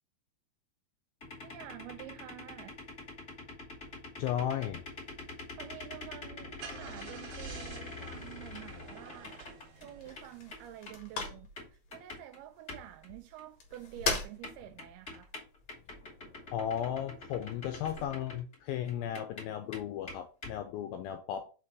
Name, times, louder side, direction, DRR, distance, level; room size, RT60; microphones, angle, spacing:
sound 1, 1.2-10.2 10.5-12.4 12.7-13.1 13.4-13.5 13.7-13.8 14.1-18.6 18.9-20.6, left 3 dB, 25° left, 2.1 m, -46 dB
voice 1, 1.4-2.8 5.6-9.4 9.8-15.3, right 13 dB, 80° right, 2.4 m, -49 dB
voice 2, 4.2-4.8 16.5-21.5, left 10 dB, 80° left, 2.1 m, -35 dB
Car / Engine starting, 6.2-10.9, right 5 dB, 60° right, 1.6 m, -49 dB
sound 2, 8.1-18.1, left 4 dB, 60° left, 1.8 m, -43 dB
5.8 x 4.3 x 4.7 m
omnidirectional pair, 4.8 m